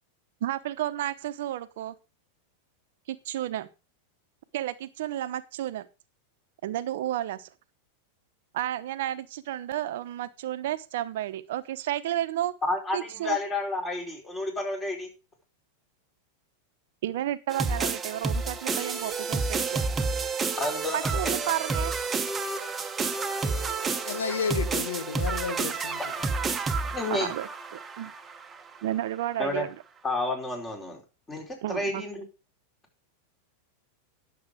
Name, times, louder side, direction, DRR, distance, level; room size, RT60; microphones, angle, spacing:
voice 1, 0.4-1.9 3.1-3.7 4.5-5.9 6.6-7.5 8.5-12.5 12.9-13.4 17.0-19.8 20.9-21.9 27.1-28.1 28.8-29.7 31.6-32.0, right 13 dB, 65° right, 0.9 m, -32 dB
voice 2, 12.6-15.1 20.6-21.3 26.9-27.3 29.4-29.7 30.0-31.0 31.3-32.3, left 2 dB, 20° left, 4.5 m, -30 dB
sound 1, 17.5-28.6, right 4 dB, 20° right, 1.2 m, -30 dB
voice 3, 23.6-26.3, left 6 dB, 80° left, 1.2 m, -33 dB
11.0 x 7.2 x 5.0 m
hypercardioid pair, 100°, 0 cm